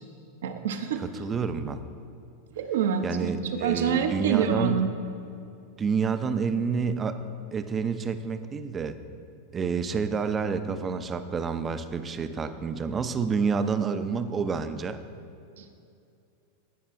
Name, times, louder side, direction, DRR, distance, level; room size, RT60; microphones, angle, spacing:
voice 1, 0.4-1.0 2.5-3.3 3.6-4.9 15.6-15.7, right 7 dB, 70° right, 6 dB, 0.7 m, -26 dB
voice 2, 1.0-1.8 3.0-4.8 5.8-7.2 7.5-9.0 9.5-15.0, right 5 dB, 25° right, 10 dB, 0.5 m, -29 dB
15.0 x 5.4 x 2.6 m, 2.6 s
hypercardioid pair, 95°, 0 cm